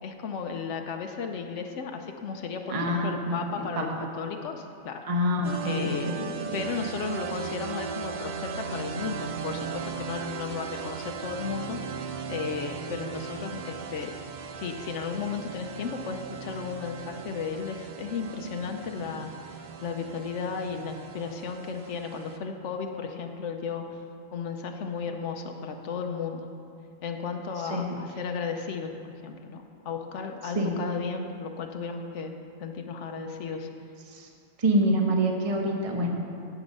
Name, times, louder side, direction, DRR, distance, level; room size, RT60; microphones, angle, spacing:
voice 1, 0.0-5.1 5.6-6.1 6.5-11.8 12.3-14.1 14.6-23.9 24.3-26.5 27.0-33.7, left 5 dB, 85° left, 4 dB, 1.0 m, -34 dB
voice 2, 2.7-4.0 5.0-6.6 27.7-28.0 30.4-30.8 34.1-34.3 34.6-36.1, equal, 30° right, 1 dB, 1.0 m, -27 dB
sound 1, 5.4-22.4, right 6 dB, 50° right, 0.6 m, -38 dB
10.0 x 7.8 x 5.4 m, 2.4 s
omnidirectional pair, 1.2 m